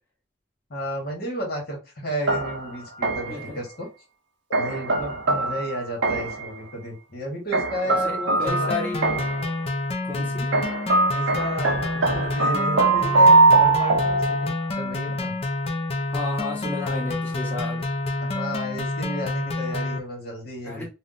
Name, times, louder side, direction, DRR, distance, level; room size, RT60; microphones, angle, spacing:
voice 1, 0.7-3.9 4.5-8.9 10.1-10.3 11.1-15.3 18.2-20.9, equal, 55° left, 1.1 m, -32 dB
sound 1, 2.3-3.5 4.5-6.5 7.5-9.5 10.5-14.8, right 3 dB, 85° right, 0.5 m, -21 dB
voice 2, 7.8-9.1 10.0-10.5 16.1-17.9 20.6-20.9, left 3 dB, 10° left, 1.1 m, -32 dB
sound 2, 8.5-20.0, left 2 dB, 35° left, 0.4 m, -28 dB
2.5 x 2.1 x 3.9 m
head